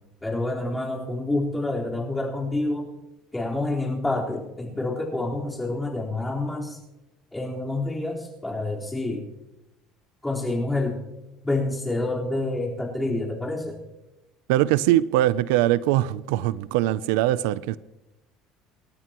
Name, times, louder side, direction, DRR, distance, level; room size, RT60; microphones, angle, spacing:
voice 1, 0.2-2.9 3.3-6.8 7.3-9.2 10.2-11.0 11.4-13.8, left 2 dB, 10° left, -3 dB, 4.2 m, -28 dB
voice 2, 14.5-17.8, right 14 dB, 90° right, 17 dB, 0.5 m, -22 dB
27.5 x 12.5 x 3.0 m, 0.96 s
cardioid pair, 130°, 0 cm